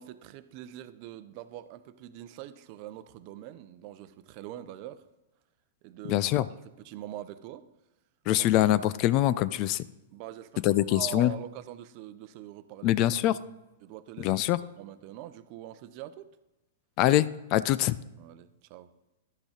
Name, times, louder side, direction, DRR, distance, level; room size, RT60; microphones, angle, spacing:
voice 1, 0.0-5.0 5.8-6.2 6.6-7.7 8.4-8.5 10.1-10.6 10.9-12.9 13.8-14.4 14.8-16.3 18.2-18.9, right 13 dB, 45° right, 0.7 m, -43 dB
voice 2, 6.1-6.5 8.3-9.8 10.6-11.3 12.8-13.4 14.2-14.6 17.0-18.0, left 14 dB, 40° left, 0.5 m, -24 dB
12.0 x 6.1 x 5.1 m
hypercardioid pair, 105°, 0 cm